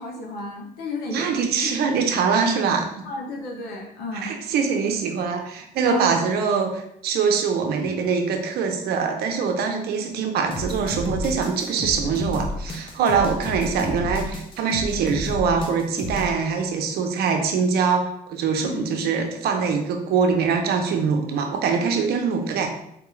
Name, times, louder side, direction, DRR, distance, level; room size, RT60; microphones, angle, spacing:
voice 1, 0.0-1.4 3.1-4.3 5.8-6.2 13.0-13.2 18.6-18.9, left 1 dB, 70° left, 0 dB, 0.7 m, -31 dB
voice 2, 1.1-2.9 4.2-22.7, right 5 dB, 70° right, 4 dB, 0.6 m, -23 dB
sound 1, 10.5-16.3, left 1 dB, 30° left, 0.6 m, -31 dB
3.7 x 2.3 x 3.1 m, 0.76 s
cardioid pair, 110°, 17 cm